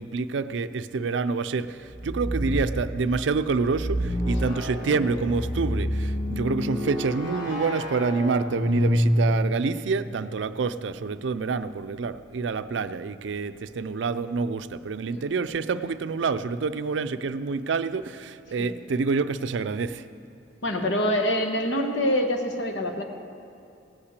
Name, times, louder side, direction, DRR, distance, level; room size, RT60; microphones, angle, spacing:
voice 1, 0.0-20.0, right 4 dB, 70° right, 12 dB, 0.4 m, -27 dB
sound 1, 1.8-2.8 3.6-9.6, equal, 45° left, 2.2 m, -27 dB
voice 2, 20.6-23.0, equal, 75° left, 4 dB, 1.2 m, -25 dB
17.0 x 5.8 x 8.2 m, 2.6 s
head